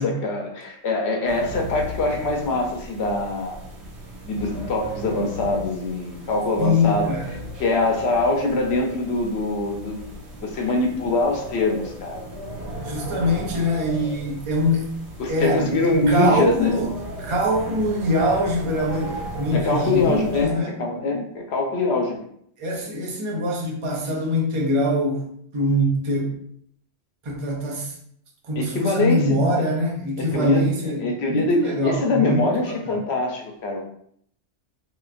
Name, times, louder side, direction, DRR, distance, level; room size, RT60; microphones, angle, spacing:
voice 1, 0.0-3.6 4.3-7.1 7.6-10.0 10.4-12.2 15.2-16.8 19.5-22.2 28.6-29.6 30.2-33.8, left 2 dB, 70° left, 1 dB, 0.9 m, -23 dB
sound 1, 1.3-20.4, equal, 70° right, 1.1 m, -36 dB
voice 2, 6.6-7.3 12.8-14.9 15.3-20.7 22.6-26.4 27.2-27.9 28.4-33.0, left 1 dB, 35° right, -1 dB, 0.6 m, -24 dB
3.2 x 3.0 x 2.4 m, 0.67 s
omnidirectional pair, 1.2 m